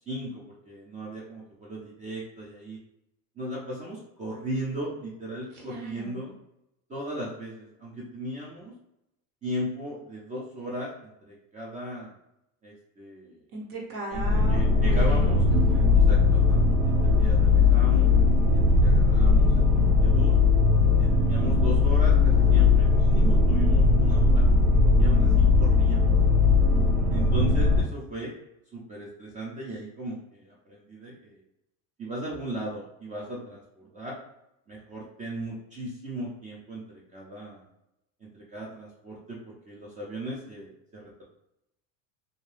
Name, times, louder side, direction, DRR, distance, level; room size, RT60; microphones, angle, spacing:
voice 1, 0.1-2.8 3.4-6.4 6.9-8.7 9.4-12.1 12.6-13.4 14.1-14.2 14.5-15.4 16.1-18.1 18.5-20.4 21.0-24.5 25.0-26.1 27.1-28.3 28.7-31.3 32.0-34.2 34.7-37.6 38.3-41.2, right 1 dB, 20° right, -4 dB, 0.5 m, -37 dB
voice 2, 5.6-6.2 13.5-15.9, right 3 dB, 55° right, -2 dB, 0.8 m, -36 dB
sound 1, 14.1-27.8, left 3 dB, 80° right, 1.1 m, -20 dB
2.7 x 2.2 x 3.3 m, 0.84 s
supercardioid pair, 140°, 40 cm